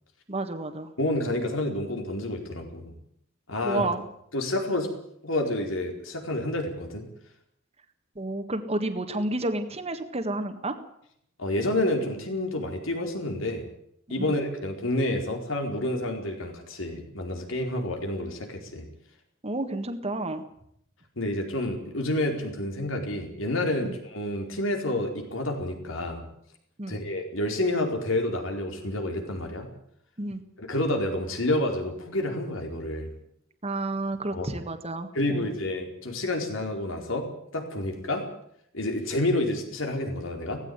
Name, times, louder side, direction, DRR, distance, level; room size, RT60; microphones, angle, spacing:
voice 1, 0.3-0.9 3.6-4.1 8.1-10.7 14.1-14.4 19.4-20.4 23.8-24.0 26.8-27.0 30.2-30.4 33.6-35.6, right 2 dB, 30° right, 6 dB, 1.7 m, -30 dB
voice 2, 1.0-2.9 3.5-3.9 4.3-4.9 5.2-7.0 11.4-13.6 14.1-18.8 21.2-26.2 26.9-29.7 30.6-33.1 34.3-34.6 35.1-37.3 37.5-38.2 38.7-40.6, left 1 dB, 75° left, 3 dB, 4.6 m, -29 dB
18.0 x 15.5 x 9.6 m, 0.71 s
head